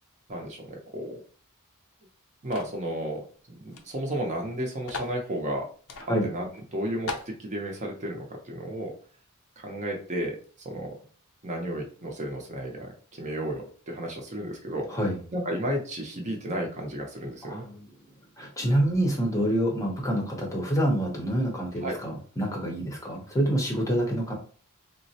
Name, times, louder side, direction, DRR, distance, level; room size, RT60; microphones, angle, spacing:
voice 1, 0.3-1.2 2.4-5.7 6.2-8.9 9.6-10.4 10.6-10.9 11.4-14.9 15.3-17.6 21.8-22.0, right 1 dB, 35° right, 1 dB, 0.6 m, -33 dB
sound 1, 2.5-2.8 3.7-3.8 4.1-4.2 4.9-5.2 5.9-6.1 6.5-6.6 7.1-7.3, left 3 dB, 70° left, 0.5 m, -36 dB
voice 2, 17.5-17.8 18.4-24.3, right 1 dB, 15° left, 0 dB, 0.7 m, -27 dB
3.7 x 2.0 x 2.7 m, 0.42 s
head